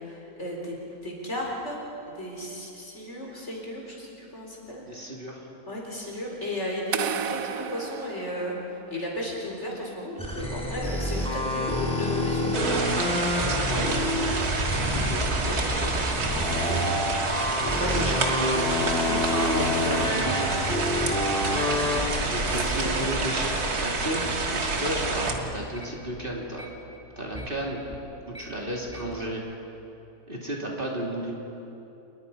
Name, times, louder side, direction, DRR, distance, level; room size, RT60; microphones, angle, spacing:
voice 1, 0.0-4.8 5.7-12.6 13.4-13.9 16.3-16.6 22.4-23.1 24.7-24.9, left 1 dB, 50° left, -2 dB, 4.9 m, -35 dB
voice 2, 4.9-5.5 13.7-13.9 14.9-15.9 16.5-16.8 17.6-20.8 22.2-24.2 24.5-26.7 27.2-27.8 28.3-29.4 30.3-31.3, right 1 dB, 35° right, -2 dB, 3.0 m, -33 dB
sound 1, 6.9-9.0, right 8 dB, 70° right, 1.2 m, -33 dB
sound 2, 10.2-25.8 26.1-28.4 28.8-29.3, left 1 dB, 5° left, 3.3 m, -29 dB
sound 3, 12.5-25.3, right 3 dB, 85° right, 2.4 m, -28 dB
28.5 x 21.0 x 5.6 m, 2.8 s
omnidirectional pair, 1.6 m